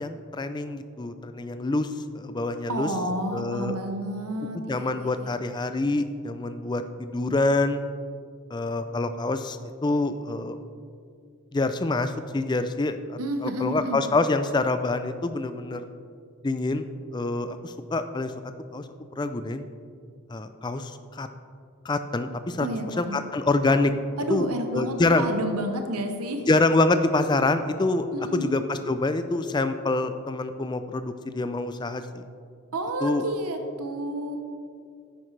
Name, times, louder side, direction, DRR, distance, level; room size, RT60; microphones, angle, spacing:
voice 1, 0.0-2.9 3.3-3.8 4.5-7.8 8.5-10.6 11.5-15.9 16.4-16.9 17.1-18.3 18.7-18.8 19.2-19.7 20.3-21.3 21.8-22.7 23.0-23.9 24.3-25.2 26.5-32.2 33.0-33.2, left 2 dB, 20° left, 10 dB, 0.3 m, -26 dB
voice 2, 2.7-5.3 13.2-14.0 22.6-23.2 24.2-26.5 28.1-28.5 32.7-34.4, right 1 dB, 85° right, 5 dB, 0.8 m, -30 dB
9.7 x 9.7 x 3.2 m, 2.3 s
head